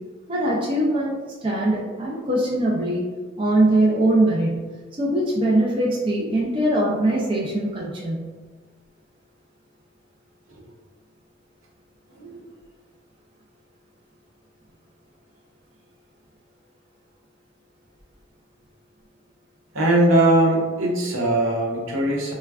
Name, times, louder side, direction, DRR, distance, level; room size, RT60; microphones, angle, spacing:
voice 1, 0.3-1.1 1.4-3.1 3.4-4.7 5.0-8.3, right 1 dB, 25° right, -5 dB, 0.4 m, -21 dB
voice 2, 19.7-22.3, right 1 dB, 75° right, -4 dB, 0.8 m, -20 dB
3.3 x 2.2 x 2.3 m, 1.4 s
head